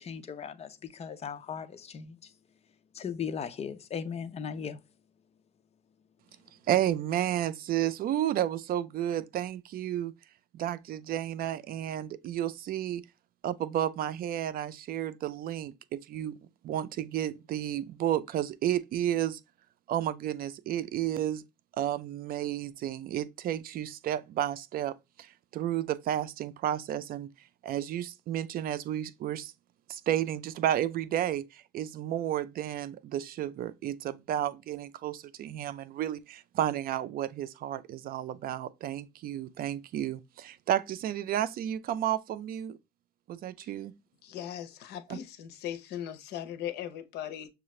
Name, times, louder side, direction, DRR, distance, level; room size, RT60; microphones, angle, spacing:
voice 1, 0.0-2.2 2.9-4.8, left 7 dB, 40° left, 0.6 m, -37 dB
voice 2, 6.7-10.1 10.5-13.0 13.4-16.3 16.6-19.4 19.9-21.4 21.8-24.9 25.2-27.3 27.6-29.5 29.9-42.8 43.3-43.9 45.1-45.2, right 11 dB, 60° right, 0.5 m, -32 dB
voice 3, 44.2-47.5, left 10 dB, 75° left, 0.8 m, -39 dB
6.6 x 2.4 x 3.1 m
cardioid pair, 110°, 17 cm